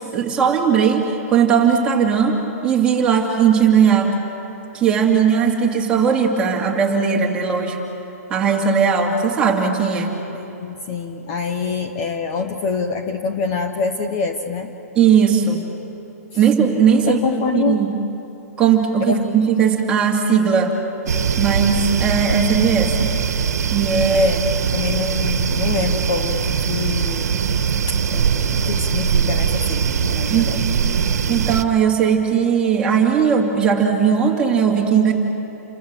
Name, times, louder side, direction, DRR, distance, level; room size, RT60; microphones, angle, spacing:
voice 1, 0.0-4.1 4.7-7.8 8.3-10.1 15.0-15.7 16.4-18.0 18.6-20.7 21.4-23.1 23.7-24.3 30.3-30.5 31.3-35.1, right 7 dB, 10° right, -1 dB, 2.4 m, -18 dB
voice 2, 10.3-14.7 17.1-17.8 19.1-19.2 24.1-27.4 28.1-30.6, left 5 dB, 25° left, 6 dB, 1.0 m, -25 dB
sound 1, 21.1-31.6, right 7 dB, 80° right, 1.5 m, -21 dB
29.5 x 24.5 x 7.6 m, 2.9 s
hypercardioid pair, 170°, 9 cm